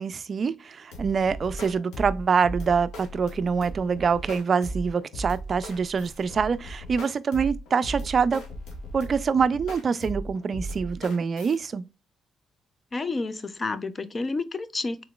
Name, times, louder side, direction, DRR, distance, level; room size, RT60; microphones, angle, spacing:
voice 1, 0.0-8.4 8.9-11.9, right 5 dB, 45° right, 0.4 m, -25 dB
sound 1, 0.9-11.6, right 1 dB, 85° left, 1.3 m, -37 dB
voice 2, 12.9-15.0, left 3 dB, 30° left, 0.5 m, -30 dB
3.8 x 3.7 x 2.3 m
cardioid pair, 90°, 0 cm